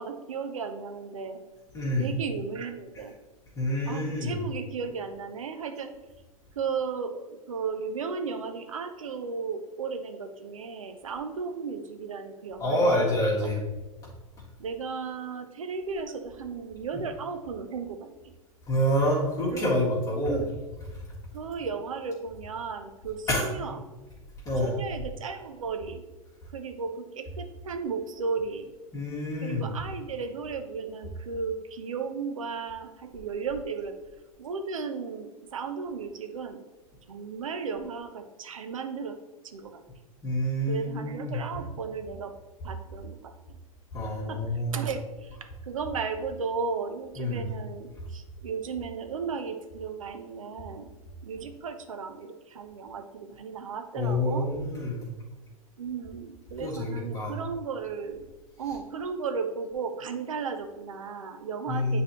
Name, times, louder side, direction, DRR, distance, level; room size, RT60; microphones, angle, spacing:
voice 1, 0.0-1.4 2.0-3.1 3.9-5.9 6.5-13.5 14.6-18.3 19.5-19.8 20.3-20.5 21.3-23.8 24.6-26.0 26.5-28.7 29.4-34.0 34.4-36.7 37.1-39.2 39.4-39.8 40.7-42.3 42.6-43.6 44.3-44.4 44.7-50.9 51.2-54.5 55.8-58.3 58.6-62.0, right 5 dB, 65° right, 7 dB, 0.8 m, -35 dB
voice 2, 1.7-2.1 3.6-4.3 12.6-13.6 18.7-20.4 23.3-23.5 24.5-24.7 28.9-29.6 40.2-41.4 43.9-44.8 47.2-47.4 54.0-55.1 56.6-57.4 61.7-62.0, left 1 dB, 20° left, -7 dB, 2.0 m, -27 dB
9.7 x 4.0 x 3.1 m, 1.2 s
figure-of-eight pair, 95°, 18 cm